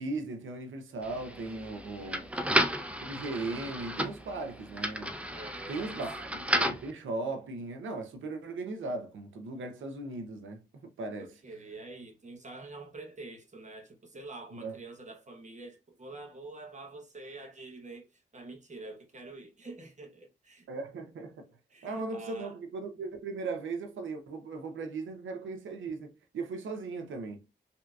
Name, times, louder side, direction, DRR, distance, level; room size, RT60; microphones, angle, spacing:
voice 1, 0.0-2.3 3.0-5.2 5.7-11.3 14.5-14.8 20.7-21.5 21.8-27.4, right 3 dB, 85° right, 0.7 m, -38 dB
sound 1, 1.0-6.9, equal, 5° right, 0.6 m, -33 dB
voice 2, 2.0-2.5 5.3-6.1 11.2-20.7 21.7-22.6, right 2 dB, 40° right, 1.0 m, -47 dB
3.3 x 2.7 x 2.3 m
cardioid pair, 50°, 20 cm